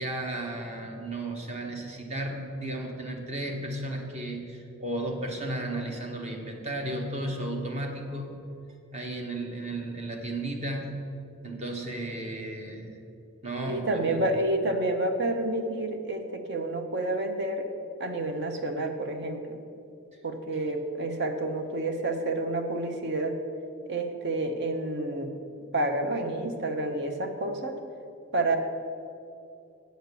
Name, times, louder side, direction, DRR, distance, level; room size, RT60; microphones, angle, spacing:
voice 1, 0.0-8.4 8.9-11.0 11.4-12.9 13.4-14.2, right 1 dB, 30° right, 2 dB, 1.2 m, -34 dB
voice 2, 13.7-17.7 18.0-19.6 20.2-23.4 23.9-25.4 25.7-27.8 28.3-28.6, right 2 dB, 55° right, 6 dB, 0.9 m, -29 dB
7.9 x 6.6 x 6.7 m, 2.6 s
head